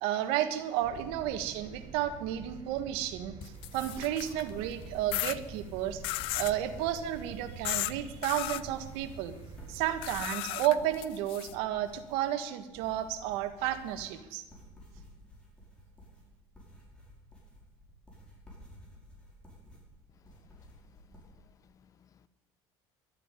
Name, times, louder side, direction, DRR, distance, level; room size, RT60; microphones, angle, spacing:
voice 1, 0.0-6.0 6.3-9.3 9.7-14.4, right 11 dB, 80° right, 10 dB, 1.5 m, -32 dB
sound 1, 0.8-10.3, right 6 dB, 45° right, 1.1 m, -47 dB
sound 2, 3.4-4.5 5.1-5.4 6.0-6.6 7.6-7.9 8.2-8.6 10.0-11.5, left 19 dB, 65° left, 0.5 m, -35 dB
sound 3, 4.5-21.3, equal, 10° left, 5.6 m, -54 dB
voice 2, 20.2-22.3, left 8 dB, 35° left, 15 dB, 0.8 m, -64 dB
12.0 x 11.0 x 9.9 m, 1.1 s
cardioid pair, 140°, 10 cm